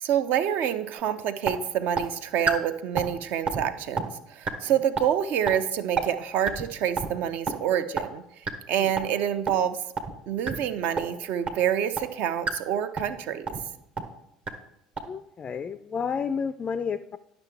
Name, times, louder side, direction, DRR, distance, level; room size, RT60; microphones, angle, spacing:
voice 1, 0.0-8.2 8.7-9.8 10.3-13.6, right 9 dB, 55° right, 12 dB, 0.5 m, -27 dB
sound 1, 1.0-1.1 1.5-1.6 2.0-2.1 2.5-2.6 3.0-3.2 3.5-3.6 4.0-4.1 4.5-4.6 5.0-5.1 5.5-5.6 6.0-6.1 6.5-6.6 7.0-7.1 7.5-7.6 8.0-8.1 8.5-8.6 9.0-9.1 9.5-9.6 10.0-10.1 10.5-10.6 11.0-11.1 11.5-11.6 12.0-12.1 12.5-12.6 13.0-13.2 13.5-13.6 14.0-14.1 14.5-14.6 15.0-15.1, right 5 dB, 35° right, 0.9 m, -27 dB
voice 2, 15.1-17.2, left 6 dB, 30° left, 12 dB, 0.3 m, -31 dB
10.5 x 5.9 x 3.4 m, 0.82 s
figure-of-eight pair, 65°, 3 cm